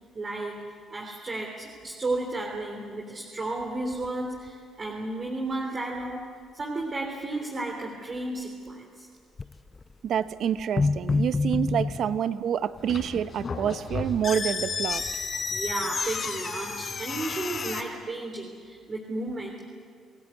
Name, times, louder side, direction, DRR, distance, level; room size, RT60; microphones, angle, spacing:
voice 1, 0.2-9.1 15.5-19.7, right 2 dB, 40° right, 1 dB, 3.4 m, -33 dB
sound 1, 4.0-4.1 4.5-4.6 9.4-9.8 10.6-12.2, left 3 dB, 30° left, 0.6 m, -26 dB
voice 2, 10.0-15.0, right 9 dB, 65° right, 14 dB, 0.9 m, -27 dB
sound 2, 12.8-17.8, left 4 dB, 50° left, 3.7 m, -32 dB
29.5 x 17.0 x 8.3 m, 2.1 s
supercardioid pair, 60°, 0 cm